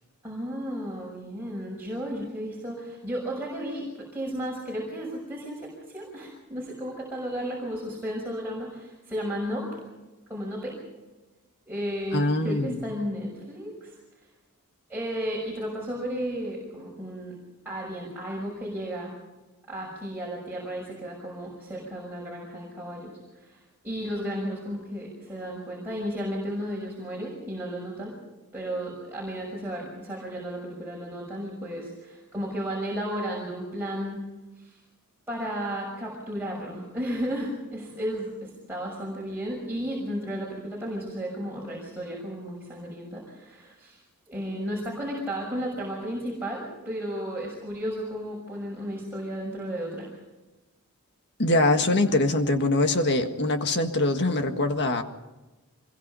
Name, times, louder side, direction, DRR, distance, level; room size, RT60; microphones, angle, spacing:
voice 1, 0.2-9.8 10.3-10.7 11.7-13.9 14.9-17.4 17.6-19.1 19.7-23.6 23.8-28.2 28.5-34.2 34.6-34.8 35.3-50.1, equal, 10° right, -4 dB, 6.3 m, -33 dB
voice 2, 12.1-12.8 51.4-55.0, left 2 dB, 50° left, 6 dB, 1.7 m, -23 dB
25.5 x 22.0 x 5.6 m, 1.1 s
head